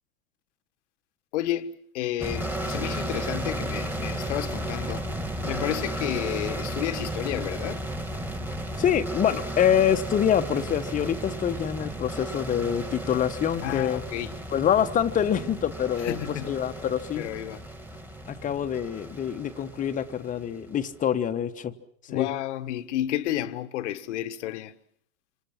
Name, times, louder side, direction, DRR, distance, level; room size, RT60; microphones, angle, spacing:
voice 1, 1.3-5.1 5.4-7.9 13.6-14.3 16.0-16.6 17.1-17.6 22.1-24.8, left 13 dB, 50° left, 1.4 m, -31 dB
sound 1, 2.2-20.8, right 1 dB, 5° right, 2.2 m, -34 dB
voice 2, 8.8-14.0 14.5-16.2 16.4-17.2 18.3-21.7 22.1-22.3, left 9 dB, 15° left, 1.2 m, -25 dB
27.0 x 26.0 x 5.9 m
figure-of-eight pair, 105°, 44 cm